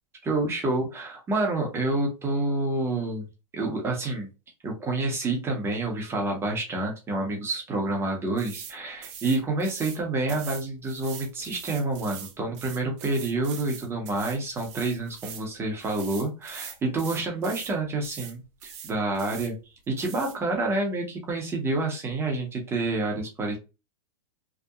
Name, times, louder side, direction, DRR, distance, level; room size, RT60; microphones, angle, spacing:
voice 1, 0.2-3.3 3.5-4.3 4.6-19.6 19.9-23.6, right 2 dB, 15° right, 1 dB, 0.7 m, -28 dB
sound 1, 8.4-8.7 9.0-10.0 10.3-15.5 15.8-17.7 18.0-18.3 18.6-19.5 20.0-20.4, right 8 dB, 55° right, 0.6 m, -42 dB
2.7 x 2.1 x 2.3 m, 0.29 s
hypercardioid pair, 140°, 18 cm